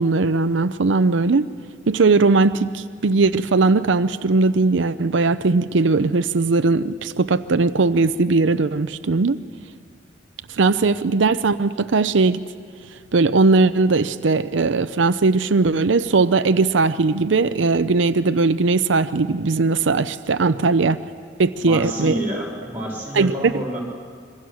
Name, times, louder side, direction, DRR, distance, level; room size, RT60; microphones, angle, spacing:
voice 1, 0.0-1.5 1.9-9.4 10.5-12.4 13.1-21.0 21.4-22.1 23.1-23.5, right 3 dB, 85° right, 11 dB, 0.6 m, -19 dB
voice 2, 20.5-20.8 21.6-23.8, right 1 dB, 10° right, -3 dB, 5.9 m, -29 dB
26.5 x 23.0 x 6.3 m, 2.1 s
head